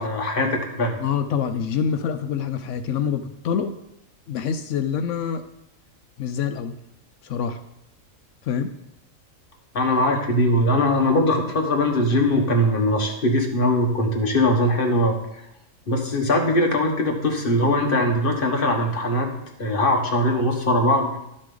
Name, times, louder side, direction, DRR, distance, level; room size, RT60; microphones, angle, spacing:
voice 1, 0.0-1.0 9.7-15.2 15.9-19.3 19.6-21.2, left 1 dB, 40° left, 2 dB, 1.4 m, -21 dB
voice 2, 1.0-3.7 4.3-5.5 6.2-6.7 7.2-7.6 8.4-8.7, left 7 dB, 70° left, 9 dB, 0.9 m, -26 dB
12.0 x 6.4 x 3.8 m, 0.83 s
omnidirectional pair, 1.4 m